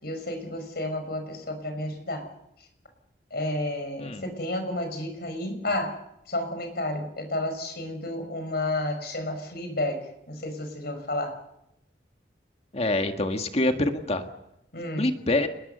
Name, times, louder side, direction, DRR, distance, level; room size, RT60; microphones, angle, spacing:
voice 1, 0.0-2.3 3.3-6.0 6.3-11.4 14.7-15.1, left 1 dB, 60° left, 6 dB, 5.5 m, -31 dB
voice 2, 12.7-14.3 15.0-15.5, left 2 dB, 35° left, 6 dB, 1.7 m, -25 dB
29.0 x 21.0 x 6.9 m, 0.82 s
head